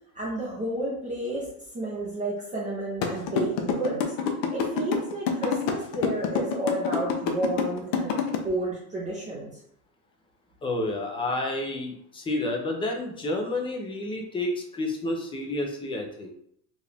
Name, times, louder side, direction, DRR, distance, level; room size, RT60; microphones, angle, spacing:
voice 1, 0.1-1.5 1.7-4.0 4.5-9.5, right 1 dB, 15° right, -5 dB, 0.8 m, -31 dB
sound 1, 3.0-8.4, left 7 dB, 45° left, 0.7 m, -26 dB
voice 2, 10.6-16.3, left 2 dB, 10° left, 1 dB, 0.5 m, -30 dB
4.8 x 2.5 x 3.4 m, 0.70 s
cardioid pair, 150°, 46 cm